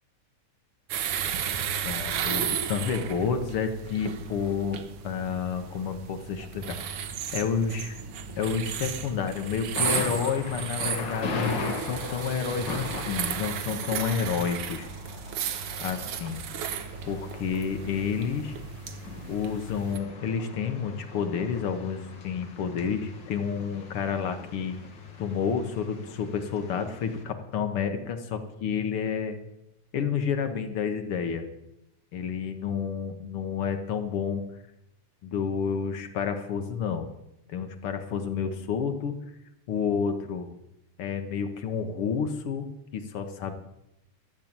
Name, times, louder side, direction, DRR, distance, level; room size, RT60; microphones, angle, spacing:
sound 1, 0.9-20.0, right 8 dB, 65° right, 1.5 m, -34 dB
voice 1, 1.8-8.0 8.3-14.9 15.8-16.4 17.1-18.5 19.3-24.8 25.2-29.4 29.9-31.5 32.1-34.4 35.2-37.1 37.5-39.2 39.7-40.5 41.0-42.7 42.9-43.5, left 6 dB, 60° left, 7 dB, 1.7 m, -30 dB
Thunder, 9.8-27.2, left 4 dB, 45° left, 2.1 m, -39 dB
13.5 x 7.4 x 8.7 m, 0.86 s
omnidirectional pair, 3.4 m